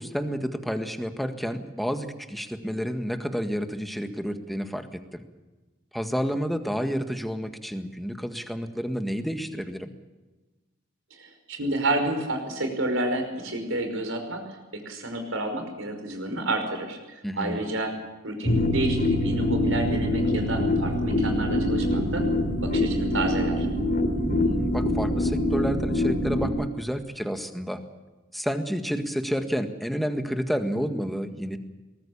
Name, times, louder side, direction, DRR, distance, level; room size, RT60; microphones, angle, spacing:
voice 1, 0.0-5.2 5.9-9.9 17.2-17.6 24.1-27.8 28.3-31.6, equal, ahead, 6 dB, 1.7 m, -30 dB
voice 2, 11.1-14.4 14.7-17.9 18.2-22.2 22.6-23.7, right 1 dB, 70° right, 5 dB, 5.3 m, -30 dB
sound 1, 18.4-26.5, left 1 dB, 40° left, 3.6 m, -24 dB
23.0 x 20.0 x 7.1 m, 1.2 s
head